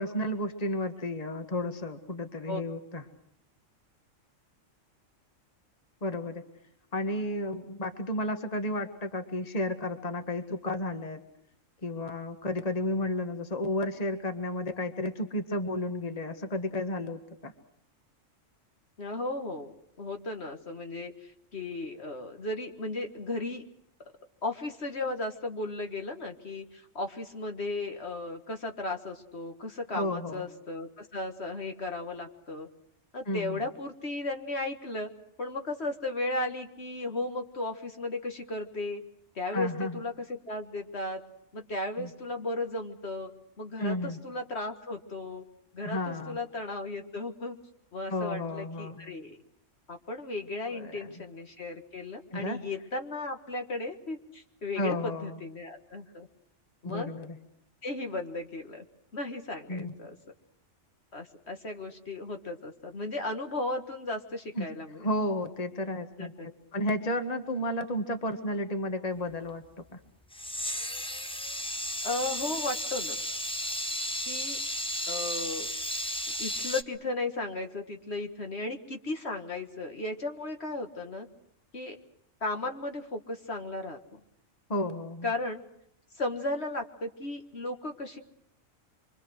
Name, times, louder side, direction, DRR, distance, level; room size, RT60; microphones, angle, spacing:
voice 1, 0.0-3.0 6.0-6.4 6.9-11.2 11.8-17.5 29.9-30.5 33.3-33.6 39.5-40.0 42.0-42.1 43.8-44.2 45.8-46.4 48.1-49.0 50.7-51.1 52.3-52.6 54.8-55.4 56.8-57.4 59.7-59.9 64.6-64.7 65.0-66.3 66.7-69.6 69.9-70.0 84.7-85.3, left 1 dB, 30° left, 7 dB, 1.7 m, -32 dB
voice 2, 19.0-23.6 24.4-32.7 33.1-35.1 35.4-39.0 39.4-41.2 41.5-43.3 43.6-45.4 45.7-47.6 47.9-49.4 49.9-56.3 56.8-57.1 57.8-58.8 59.1-60.2 61.1-65.1 66.2-66.5 72.0-73.2 74.2-74.6 75.1-75.7 76.4-81.3 81.7-82.0 82.4-84.2 85.2-85.6 86.1-88.2, left 2 dB, 55° left, 4 dB, 1.9 m, -35 dB
sound 1, 70.3-76.8, left 1 dB, 5° left, 0.7 m, -34 dB
26.0 x 24.5 x 6.3 m, 0.73 s
omnidirectional pair, 1.3 m